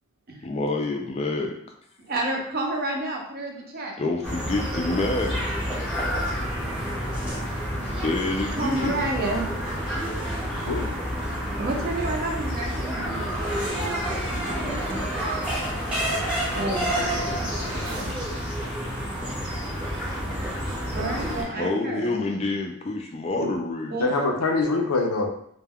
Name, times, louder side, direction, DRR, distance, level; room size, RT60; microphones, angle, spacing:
voice 1, 0.4-1.5 4.0-5.4 7.8-9.1 10.5-10.7 21.4-24.1, left 2 dB, 30° left, 2 dB, 0.3 m, -28 dB
voice 2, 2.1-4.0 8.5-9.5 11.5-15.0 16.5-17.5 20.9-22.1 23.9-24.1, right 2 dB, 40° right, 1 dB, 0.5 m, -30 dB
sound 1, 4.2-21.4, equal, 5° right, 0.6 m, -29 dB
sound 2, 13.5-18.9 19.2-21.5, equal, 90° right, 0.8 m, -37 dB
voice 3, 24.0-25.3, left 3 dB, 90° left, 2 dB, 0.5 m, -24 dB
2.2 x 2.1 x 3.4 m, 0.67 s
head